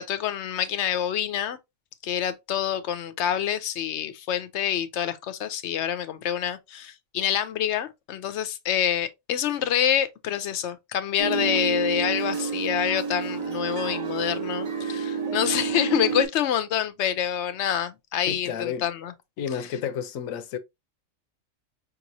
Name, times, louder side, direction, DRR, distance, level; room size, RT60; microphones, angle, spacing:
voice 1, 0.0-1.6 2.0-19.1, left 9 dB, 65° left, 0.8 m, -27 dB
sound 1, 11.2-16.3, right 5 dB, 80° right, 1.5 m, -29 dB
voice 2, 18.3-18.8 19.4-20.6, left 8 dB, 85° left, 1.0 m, -31 dB
5.2 x 3.0 x 2.6 m
omnidirectional pair, 1.4 m